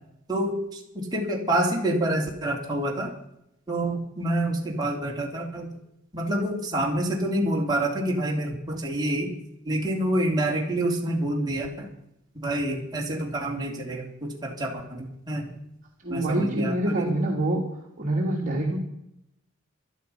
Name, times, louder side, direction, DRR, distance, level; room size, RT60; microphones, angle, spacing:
voice 1, 0.3-3.1 3.7-5.7 6.1-9.3 9.7-11.9 12.4-15.5 16.1-17.1, right 1 dB, 20° right, -1 dB, 3.4 m, -27 dB
voice 2, 16.0-17.6 18.0-18.8, right 1 dB, 40° right, -1 dB, 2.5 m, -25 dB
17.0 x 12.5 x 5.8 m, 0.79 s
head